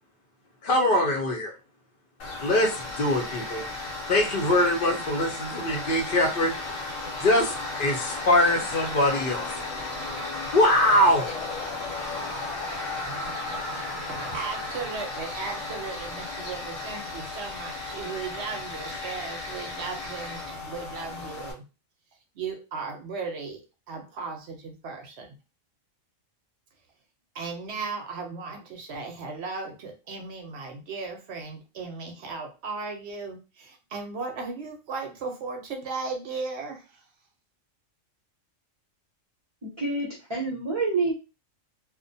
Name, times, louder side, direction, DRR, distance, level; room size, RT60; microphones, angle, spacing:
voice 1, 0.6-1.5 2.4-3.6 4.1-6.5 7.2-7.5 7.8-9.5 10.5-11.3, left 1 dB, 50° left, 1 dB, 0.7 m, -22 dB
Tools, 2.2-21.5, left 2 dB, 90° left, 1.1 m, -34 dB
voice 2, 14.1-21.6 22.4-23.6 23.9-25.3 27.3-37.0, right 4 dB, 65° right, 3 dB, 0.8 m, -36 dB
voice 3, 39.6-41.1, right 3 dB, 30° right, -5 dB, 0.6 m, -27 dB
2.4 x 2.1 x 2.6 m, 0.30 s
omnidirectional pair, 1.3 m